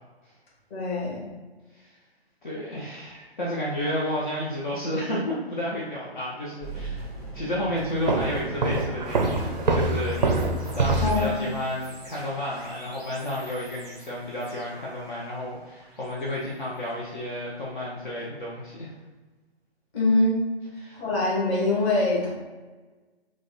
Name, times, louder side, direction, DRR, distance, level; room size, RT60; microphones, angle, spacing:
voice 1, 0.7-1.2 11.0-11.4 19.9-20.4 20.9-22.3, left 2 dB, 25° left, -6 dB, 1.4 m, -24 dB
voice 2, 2.4-7.1 7.3-18.9 20.8-21.0, left 1 dB, 50° left, -5 dB, 0.9 m, -31 dB
sound 1, 6.6-17.6, right 2 dB, ahead, 0.6 m, -43 dB
Walk footsteps, 8.1-11.4, right 2 dB, 45° right, 0.5 m, -25 dB
5.0 x 2.4 x 4.1 m, 1.3 s
figure-of-eight pair, 135°, 32 cm